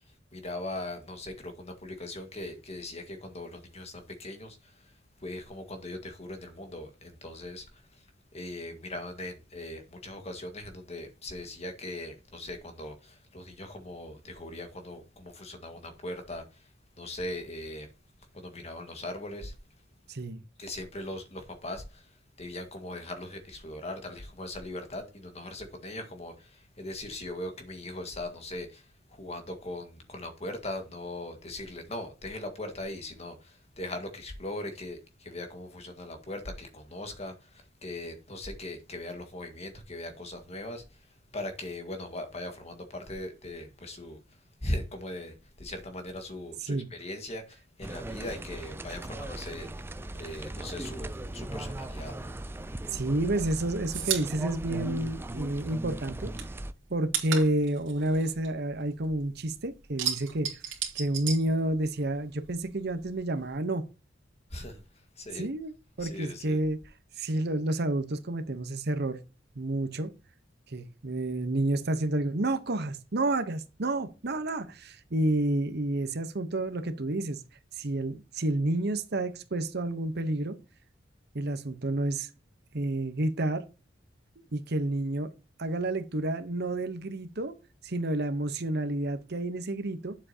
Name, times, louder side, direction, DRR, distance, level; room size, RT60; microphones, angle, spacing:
voice 1, 0.3-4.6 5.2-7.7 8.3-16.4 17.0-17.9 18.3-19.5 20.6-22.0 22.4-26.5 26.8-28.8 29.1-40.8 41.3-44.2 44.6-49.7 50.1-52.3 64.5-64.8 65.2-65.5 66.0-66.6, left 1 dB, 35° left, 1.7 m, -39 dB
voice 2, 20.1-20.4 46.6-46.9 52.9-56.3 56.9-60.5 60.9-63.9 65.3-66.8 67.2-69.2 69.5-70.1 70.7-77.4 77.7-80.6 81.3-82.3 82.7-83.6 84.4-85.3 85.6-87.5 87.8-90.2, right 1 dB, 60° right, 1.0 m, -30 dB
sound 1, 47.8-56.7, right 1 dB, 10° right, 0.4 m, -38 dB
sound 2, 52.9-55.7 56.0-59.3 59.6-62.2 62.4-63.6, right 9 dB, 80° right, 2.4 m, -35 dB
8.8 x 7.5 x 2.8 m
head